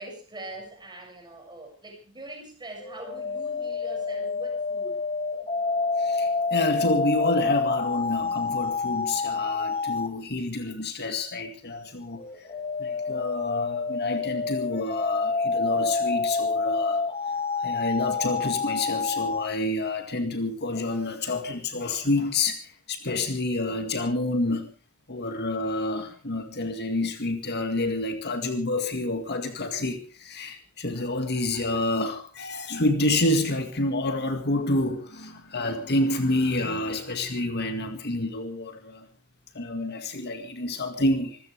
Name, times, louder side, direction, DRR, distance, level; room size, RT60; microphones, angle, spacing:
voice 1, 0.0-5.0, right 2 dB, 20° right, 7.0 m, -42 dB
sound 1, 2.8-10.2 12.2-19.5, left 4 dB, 30° left, 1.8 m, -28 dB
voice 2, 6.0-12.2 12.8-17.0 17.6-24.7 25.1-39.1 39.5-41.4, left 2 dB, 50° left, 2.1 m, -28 dB
25.5 x 15.0 x 3.5 m
head